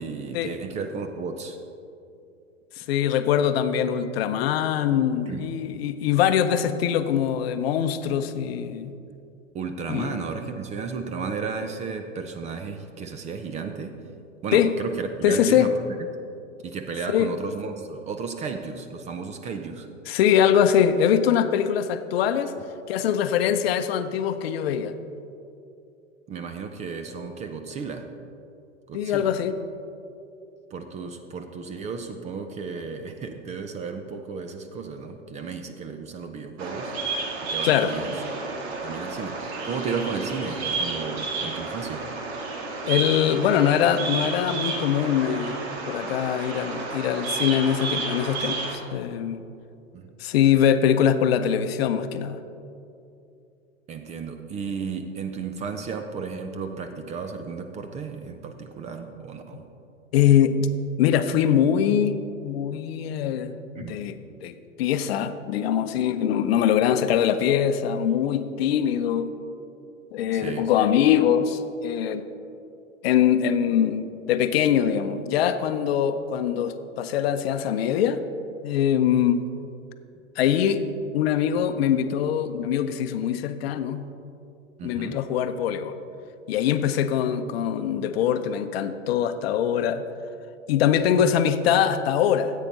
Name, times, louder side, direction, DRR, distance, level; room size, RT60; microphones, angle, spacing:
voice 1, 0.0-1.6 5.3-5.4 9.5-14.0 14.4-15.9 16.6-19.9 26.3-28.1 28.9-29.4 30.7-36.9 37.5-38.2 38.8-42.1 46.0-46.1 49.9-50.1 53.9-59.6 63.7-64.0 70.3-70.7 84.8-85.2 88.0-88.1, right 5 dB, 20° right, 7 dB, 0.5 m, -34 dB
voice 2, 2.8-8.9 9.9-10.2 14.5-14.7 15.2-15.7 17.1-17.3 20.1-22.5 22.9-24.9 28.9-29.6 37.6-38.0 42.8-45.6 45.9-49.4 50.2-52.4 60.1-60.7 61.0-62.1 62.4-63.5 63.8-69.3 70.1-72.2 73.0-78.2 78.6-79.4 80.4-80.8 81.1-84.0 84.8-86.0 86.5-90.0 90.7-92.5, left 9 dB, 50° left, 10 dB, 0.7 m, -23 dB
Bird vocalization bird call bird song, 36.6-48.8, right 3 dB, 55° right, 1.8 m, -31 dB
14.5 x 8.3 x 4.0 m, 2.6 s
hypercardioid pair, 105°, 38 cm